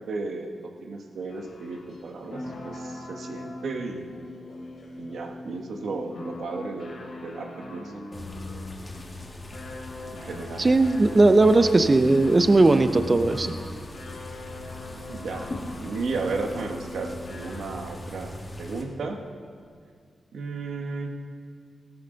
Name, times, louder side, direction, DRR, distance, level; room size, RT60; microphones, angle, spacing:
voice 1, 0.0-4.2 5.0-7.9 10.1-10.7 15.1-15.5 15.8-19.2 20.3-21.1, right 3 dB, 80° right, 3 dB, 1.4 m, -34 dB
sound 1, 1.3-18.0, left 2 dB, 65° left, 3.0 m, -41 dB
sound 2, 8.1-18.8, left 1 dB, 20° left, 1.7 m, -40 dB
voice 2, 10.6-13.5, right 2 dB, 25° right, 10 dB, 0.6 m, -18 dB
16.5 x 12.5 x 4.0 m, 2.1 s
wide cardioid pair, 135°, 0 cm